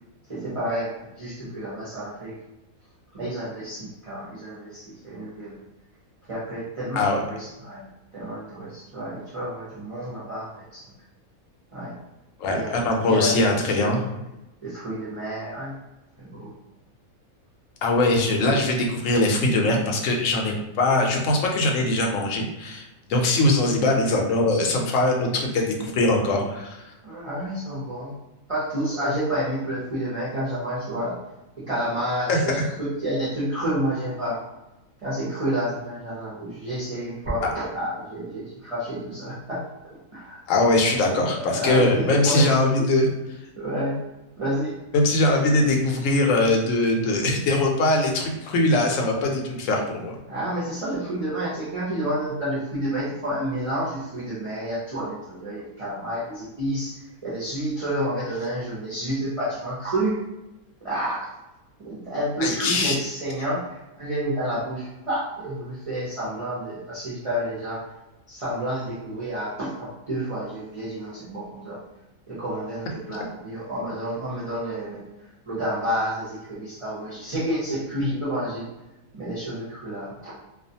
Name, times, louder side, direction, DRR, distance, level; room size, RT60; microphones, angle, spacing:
voice 1, 0.3-2.4 3.1-5.6 6.3-7.9 8.1-10.9 11.7-12.0 12.5-13.9 14.6-15.8 16.2-16.5 27.0-28.1 28.5-31.2 31.6-34.4 35.0-39.6 40.1-40.4 40.9-41.1 41.4-42.9 43.6-44.0 44.4-44.8 50.3-60.2 60.8-61.3 61.8-67.8 68.3-71.8 72.3-75.0 75.5-78.7 79.1-80.3, right 1 dB, 40° right, -9 dB, 0.5 m, -29 dB
voice 2, 12.4-14.0 17.8-26.8 32.3-32.4 40.5-43.1 44.9-50.2 62.4-63.0, left 2 dB, 70° left, 1 dB, 0.9 m, -21 dB
2.4 x 2.3 x 2.6 m, 0.97 s
omnidirectional pair, 1.5 m